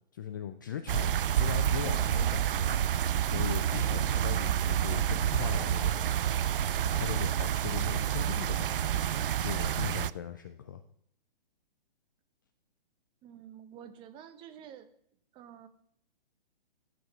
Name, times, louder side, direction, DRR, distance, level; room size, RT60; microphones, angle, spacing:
voice 1, 0.1-2.8 3.3-6.1 6.5-9.0 9.4-10.8, left 9 dB, 20° left, 8 dB, 0.3 m, -39 dB
sound 1, 0.9-10.1, right 10 dB, 65° right, 0.4 m, -29 dB
voice 2, 13.2-14.9 15.3-15.7, right 9 dB, 15° right, 10 dB, 0.7 m, -49 dB
13.5 x 5.0 x 5.5 m, 0.67 s
figure-of-eight pair, 130°, 29 cm